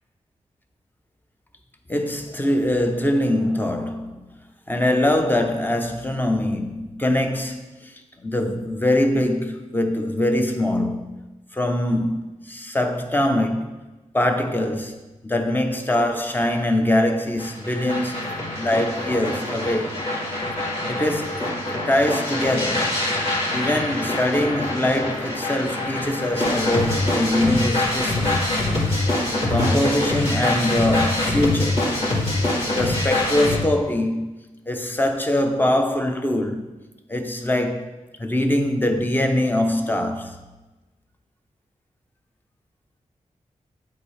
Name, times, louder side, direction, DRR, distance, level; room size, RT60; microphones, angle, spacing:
voice 1, 1.9-4.3 4.7-11.2 11.5-13.7 14.1-18.2 18.5-20.0 20.9-23.0 23.5-28.5 29.5-31.9 32.6-34.3 34.7-36.7 37.1-40.4, left 1 dB, 15° left, 0.7 m, -23 dB
sound 1, 17.4-33.6, left 2 dB, 45° left, 2.3 m, -24 dB
7.9 x 4.8 x 3.3 m
wide cardioid pair, 80°, 13 cm